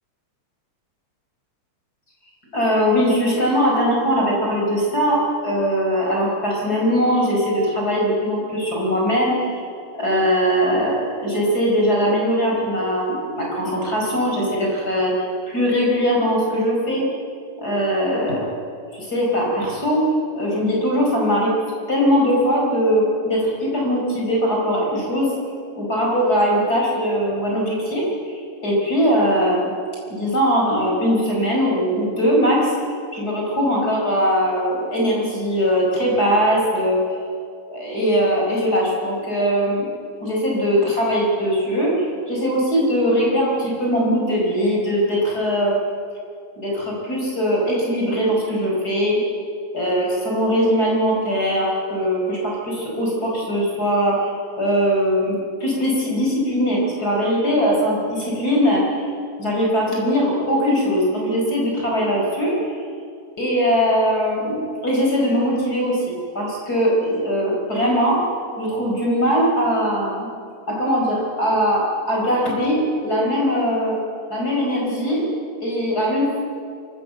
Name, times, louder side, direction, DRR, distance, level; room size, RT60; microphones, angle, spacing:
voice 1, 2.5-9.7 9.9-17.1 17.6-18.5 18.9-21.5 21.9-25.3 25.7-29.7 30.1-32.7 33.1-37.0 37.7-39.9 40.2-45.8 46.6-49.2 49.7-54.3 54.6-59.0 59.4-62.6 63.4-68.2 68.6-70.3 70.7-74.0 74.3-75.3 75.6-76.4, equal, 20° left, -2 dB, 4.5 m, -20 dB
23.5 x 14.5 x 7.9 m, 2.3 s
omnidirectional pair, 5.8 m